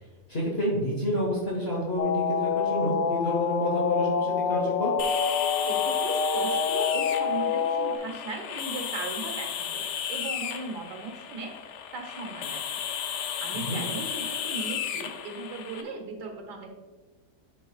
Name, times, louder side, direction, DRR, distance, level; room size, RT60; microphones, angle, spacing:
voice 1, 0.3-4.9 13.6-13.8, left 1 dB, 40° left, -4 dB, 1.5 m, -29 dB
sound 1, 2.0-8.0, left 6 dB, 70° left, 0.8 m, -27 dB
sound 2, 5.0-15.8, left 8 dB, 85° left, 1.3 m, -34 dB
voice 2, 5.7-11.5 11.9-12.8 13.4-16.8, right 3 dB, 85° right, 3 dB, 1.8 m, -38 dB
11.0 x 5.4 x 2.3 m, 1.3 s
omnidirectional pair, 1.8 m